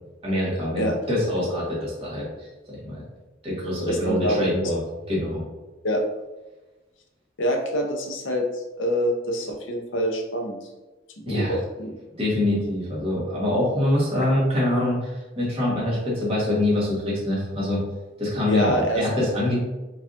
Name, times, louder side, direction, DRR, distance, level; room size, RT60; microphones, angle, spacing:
voice 1, 0.2-2.3 2.7-3.0 3.4-4.8 5.1-5.4 11.2-11.5 12.2-17.8 18.2-19.6, left 1 dB, 30° right, -6 dB, 1.3 m, -24 dB
voice 2, 3.9-4.4 5.8-6.0 7.4-10.6 11.2-11.9 18.5-19.2, equal, 80° left, 2 dB, 0.7 m, -25 dB
4.7 x 2.5 x 2.5 m, 1.1 s
head